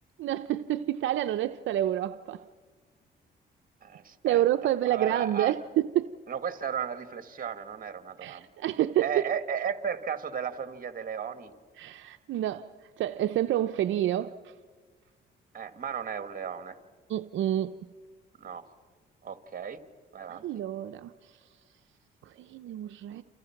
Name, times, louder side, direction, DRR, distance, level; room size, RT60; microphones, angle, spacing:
voice 1, 0.2-2.4 4.2-6.1 8.2-9.1 11.8-12.7 13.0-14.5 17.1-17.7 20.3-21.3 22.2-23.2, right 12 dB, 75° right, 0.6 m, -28 dB
voice 2, 3.8-4.4 4.9-5.6 6.3-8.5 9.0-11.5 15.5-16.8 18.4-18.6 19.2-19.8 20.1-20.4, right 7 dB, 45° right, 1.8 m, -34 dB
29.0 x 28.0 x 5.9 m
cardioid pair, 90°, 20 cm